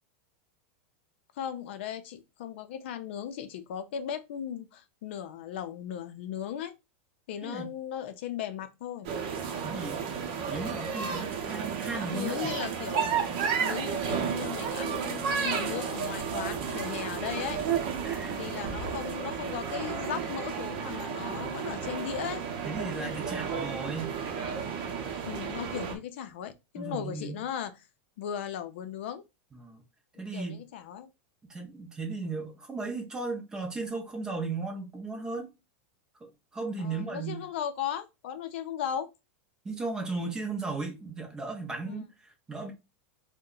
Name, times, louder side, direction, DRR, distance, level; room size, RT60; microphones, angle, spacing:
voice 1, 1.4-6.7 7.3-9.1 12.1-13.1 13.6-17.6 18.4-22.4 25.2-27.8 28.2-29.2 30.3-31.1 36.8-39.1 41.8-42.1, left 9 dB, 55° left, 0.5 m, -37 dB
sound 1, 9.0-26.0, right 6 dB, 45° right, 0.7 m, -32 dB
voice 2, 9.6-10.0 10.5-12.4 18.0-18.6 22.6-24.2 26.8-27.4 29.6-29.8 30.2-30.6 31.5-35.5 36.2-37.4 39.6-42.7, right 3 dB, 10° right, 0.6 m, -36 dB
2.7 x 2.1 x 3.8 m
supercardioid pair, 175°, 7 cm